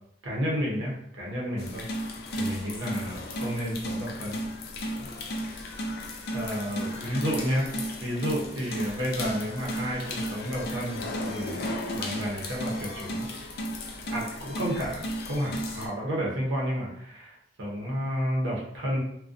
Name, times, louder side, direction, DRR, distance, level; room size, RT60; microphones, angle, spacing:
voice 1, 0.2-1.9 2.3-4.4 6.3-7.7 8.0-13.3 14.1-19.0, equal, 90° right, -3 dB, 0.6 m, -31 dB
sound 1, 1.6-15.9, equal, 55° left, 0.4 m, -34 dB
2.4 x 2.1 x 2.4 m, 0.74 s
head